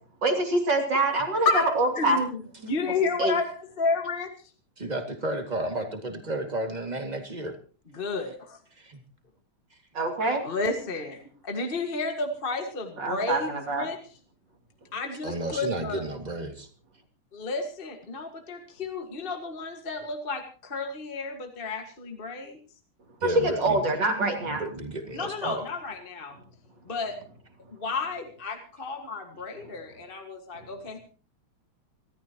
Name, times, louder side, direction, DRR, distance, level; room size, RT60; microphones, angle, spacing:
voice 1, 0.2-2.2 3.2-3.4 9.9-10.4 13.0-13.9 23.2-24.6, right 2 dB, 55° right, 2 dB, 3.7 m, -25 dB
voice 2, 2.0-2.4 2.7-4.3 7.9-8.6 10.4-14.0 14.9-16.0 17.3-22.6 25.1-26.4 26.9-27.2 27.7-31.0, left 3 dB, 25° left, 4 dB, 1.8 m, -31 dB
voice 3, 4.8-7.6 8.8-9.0 15.2-16.7 23.2-23.8 24.4-25.7, right 1 dB, 20° right, 5 dB, 2.3 m, -32 dB
26.5 x 13.5 x 3.0 m, 0.38 s
omnidirectional pair, 2.4 m